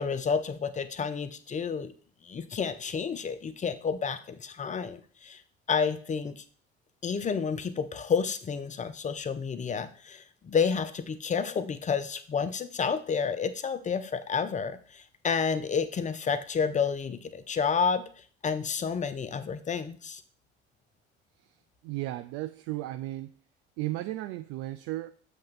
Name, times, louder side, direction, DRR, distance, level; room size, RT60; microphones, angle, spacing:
voice 1, 0.0-1.9 2.2-5.4 5.7-6.4 7.0-18.0 18.4-20.2, left 6 dB, 20° left, 12 dB, 0.5 m, -30 dB
voice 2, 21.8-23.3 23.8-25.1, right 16 dB, 45° right, 10 dB, 0.4 m, -34 dB
7.6 x 2.9 x 5.5 m, 0.42 s
figure-of-eight pair, 55°, 33 cm